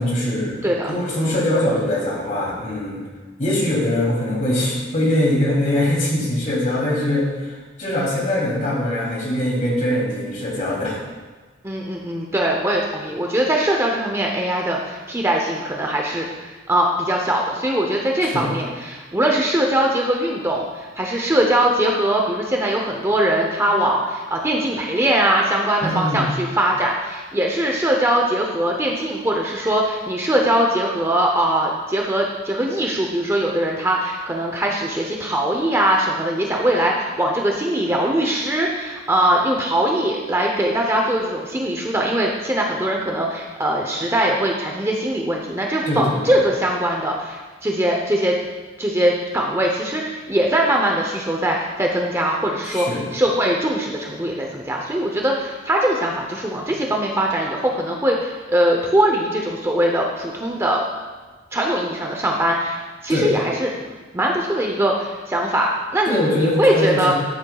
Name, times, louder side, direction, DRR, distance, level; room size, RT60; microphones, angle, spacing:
voice 1, 0.0-3.0 3.4-11.0 18.3-18.6 25.8-26.3 45.9-46.4 52.7-53.0 63.1-63.3 66.0-67.1, left 1 dB, 45° left, -4 dB, 2.9 m, -22 dB
voice 2, 0.6-1.3 11.6-48.4 48.8-60.8 61.5-63.7 64.1-67.1, right 1 dB, 15° right, 0 dB, 0.7 m, -21 dB
13.0 x 7.9 x 2.3 m, 1.3 s
head